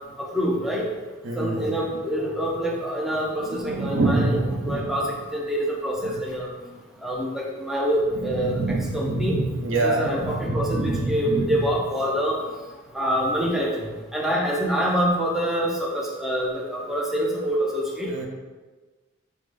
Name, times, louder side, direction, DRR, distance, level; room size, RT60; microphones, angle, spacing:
voice 1, 0.3-0.9 1.4-5.1 5.3-6.5 7.0-8.6 8.9-9.4 9.8-12.4 12.9-18.1, equal, ahead, -4 dB, 0.5 m, -26 dB
voice 2, 1.2-1.8 3.4-4.9 6.0-6.2 8.2-11.6 18.1-18.3, right 2 dB, 65° right, 0 dB, 0.6 m, -26 dB
4.8 x 2.1 x 3.3 m, 1.3 s
head